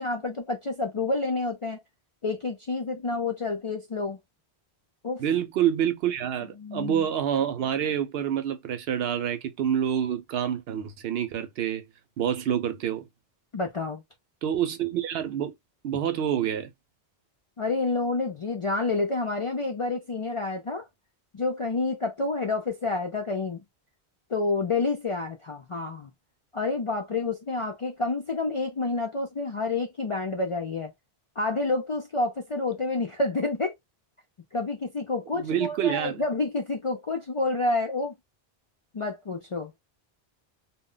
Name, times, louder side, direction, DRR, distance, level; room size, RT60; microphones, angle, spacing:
voice 1, 0.0-1.8 2.2-4.2 5.0-5.2 6.6-7.1 13.5-14.0 17.6-20.9 21.3-23.6 24.3-26.1 26.5-30.9 31.4-33.7 34.5-38.1 38.9-39.7, left 3 dB, 50° left, 0.4 m, -29 dB
voice 2, 5.2-11.8 12.2-13.1 14.4-15.5 15.8-16.7 35.3-36.2, right 9 dB, 70° right, 0.8 m, -27 dB
2.1 x 2.1 x 3.7 m
omnidirectional pair, 1.1 m